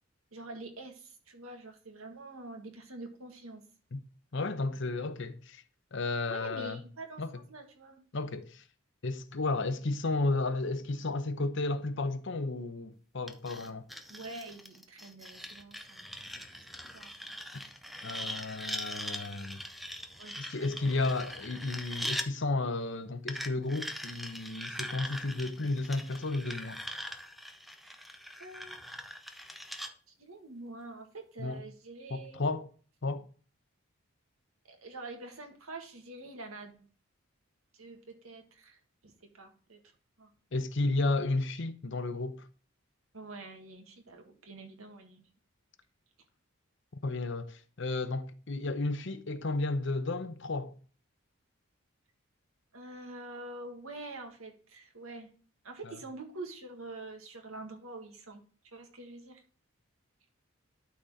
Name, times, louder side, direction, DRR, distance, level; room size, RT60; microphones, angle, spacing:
voice 1, 0.3-3.6 6.2-8.1 14.1-16.1 16.3-17.4 20.2-20.9 27.8-27.9 28.4-28.8 30.1-32.4 34.6-36.9 37.7-39.8 40.2-40.3 43.1-45.2 52.7-55.3 55.6-58.4 58.7-59.4, right 2 dB, 80° right, 1.9 m, -46 dB
voice 2, 4.3-5.6 5.9-6.8 7.2-7.3 8.1-8.6 9.0-13.8 18.0-19.6 20.4-26.8 31.4-31.6 32.1-32.7 33.0-33.2 40.5-42.5 47.0-50.7 55.9-56.0, left 2 dB, 55° left, 0.8 m, -33 dB
sound 1, 13.3-22.3 23.3-29.9, equal, ahead, 0.5 m, -41 dB
12.0 x 4.3 x 3.7 m
head